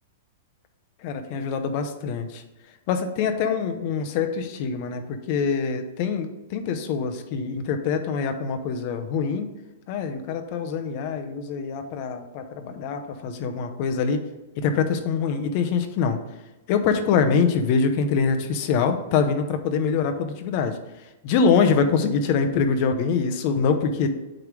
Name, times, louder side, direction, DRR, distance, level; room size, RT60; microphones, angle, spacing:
voice 1, 1.0-2.4 2.9-9.5 9.9-14.2 14.6-16.2 16.7-20.8 21.2-24.1, left 5 dB, 35° left, 7 dB, 0.7 m, -24 dB
8.6 x 3.2 x 4.8 m, 1.1 s
supercardioid pair, 170°, 0 cm